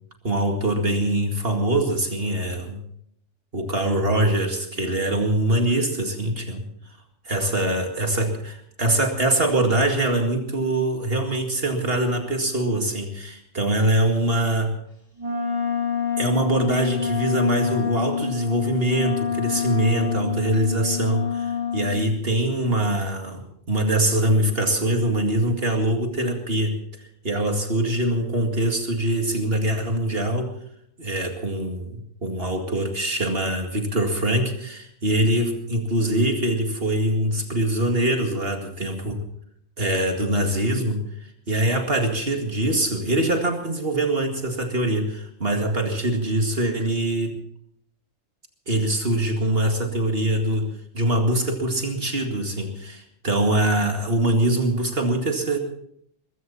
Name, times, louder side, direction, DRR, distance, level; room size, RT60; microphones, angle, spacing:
voice 1, 0.2-2.8 3.5-6.6 7.2-14.7 16.2-30.5 31.0-39.2 39.8-41.0 41.5-47.4 48.7-50.7 50.9-55.6, right 1 dB, 50° right, 4 dB, 2.4 m, -23 dB
Wind instrument woodwind instrument, 15.2-22.0, left 7 dB, 85° left, 4.3 m, -27 dB
21.5 x 16.0 x 4.2 m, 0.68 s
omnidirectional pair, 1.3 m